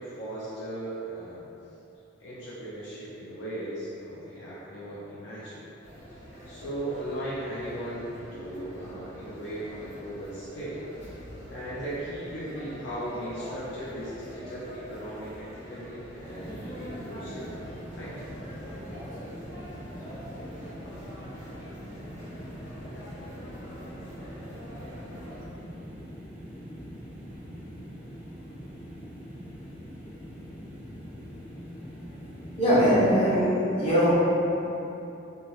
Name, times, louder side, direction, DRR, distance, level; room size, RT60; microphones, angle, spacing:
voice 1, 0.0-1.4 2.2-5.6 6.5-10.8 11.5-17.5 17.9-18.1, right 1 dB, 60° left, -9 dB, 0.5 m, -37 dB
sound 1, 5.8-25.5, equal, 80° left, 1.4 m, -44 dB
sound 2, 16.2-33.4, equal, 5° right, 0.4 m, -43 dB
voice 2, 32.6-34.3, equal, 30° left, -11 dB, 0.9 m, -21 dB
2.7 x 2.2 x 3.1 m, 2.9 s
head